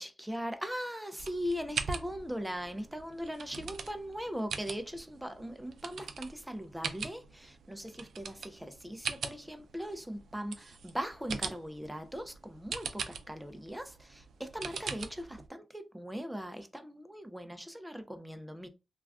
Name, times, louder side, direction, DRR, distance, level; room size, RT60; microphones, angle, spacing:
voice 1, 0.0-18.7, equal, 5° right, 0.3 m, -40 dB
sound 1, 1.2-15.5, right 5 dB, 85° right, 0.3 m, -42 dB
2.3 x 2.2 x 3.4 m
wide cardioid pair, 150°, 0 cm